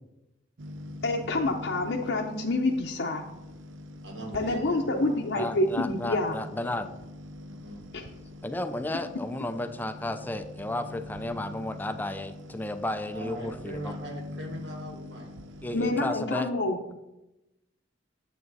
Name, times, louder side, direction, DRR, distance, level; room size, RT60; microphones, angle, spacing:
sound 1, 0.6-16.1, left 1 dB, 90° right, 0.7 m, -43 dB
voice 1, 1.0-3.2 4.3-6.3 7.9-8.0 15.7-16.8, left 2 dB, 65° left, -1 dB, 0.8 m, -27 dB
voice 2, 4.0-5.2 7.5-7.8 13.1-15.4, equal, 65° right, 1 dB, 2.2 m, -41 dB
voice 3, 5.3-6.9 8.4-13.9 15.6-16.5, left 1 dB, 10° left, 8 dB, 0.4 m, -33 dB
9.4 x 7.6 x 4.1 m, 0.98 s
head